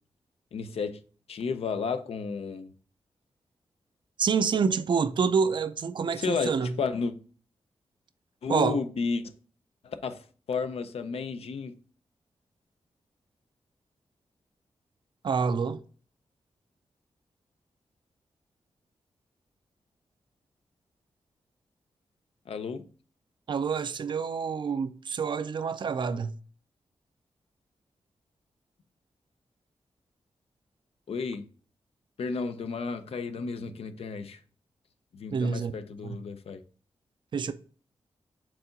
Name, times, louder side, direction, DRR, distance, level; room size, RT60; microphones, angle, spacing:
voice 1, 0.5-1.0 1.3-2.7 6.2-7.1 8.4-9.3 9.8-11.7 22.5-22.8 31.1-31.4 32.2-34.4 35.1-36.6, left 5 dB, 75° left, 0.6 m, -32 dB
voice 2, 4.2-6.8 8.5-8.8 15.2-15.8 23.5-26.3 35.3-35.7 36.0-36.2 37.3-37.5, right 5 dB, 50° right, 0.4 m, -27 dB
4.7 x 3.8 x 5.1 m
wide cardioid pair, 100°, 10 cm